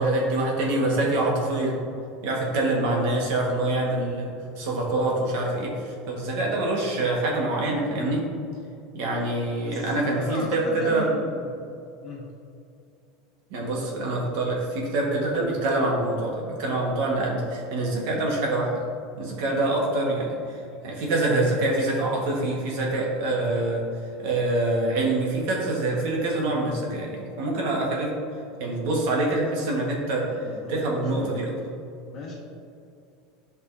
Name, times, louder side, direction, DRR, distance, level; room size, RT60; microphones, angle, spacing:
voice 1, 0.0-1.8 2.2-8.2 8.9-11.1 13.5-18.8 19.2-20.3 20.8-23.9 24.2-28.1 28.6-30.3 30.7-31.5, right 2 dB, 55° right, -2 dB, 1.5 m, -25 dB
voice 2, 9.6-11.4 12.0-12.3 30.2-31.4 32.1-32.4, left 2 dB, 25° left, -4 dB, 1.6 m, -35 dB
11.5 x 5.4 x 2.7 m, 2.5 s
supercardioid pair, 175°, 0 cm